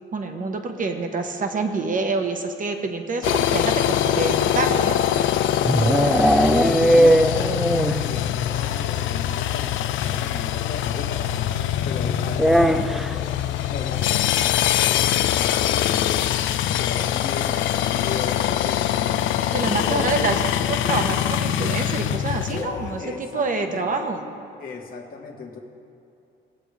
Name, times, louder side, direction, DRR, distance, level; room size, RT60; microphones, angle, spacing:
voice 1, 0.1-5.0 12.6-12.7 19.5-20.4 20.7-24.2, right 3 dB, 40° right, 5 dB, 1.2 m, -27 dB
sound 1, 3.2-23.0, left 11 dB, 80° left, 0.5 m, -23 dB
sound 2, 5.1-8.2 8.4-8.5 8.8-8.9 9.2-9.3 10.5-10.6 12.3-13.2, right 1 dB, ahead, 0.4 m, -18 dB
voice 2, 5.9-13.1 13.7-19.2 19.8-20.3 22.4-23.9 24.6-25.6, left 4 dB, 45° left, -1 dB, 1.5 m, -35 dB
19.0 x 7.8 x 3.4 m, 2.7 s
cardioid pair, 90°, 20 cm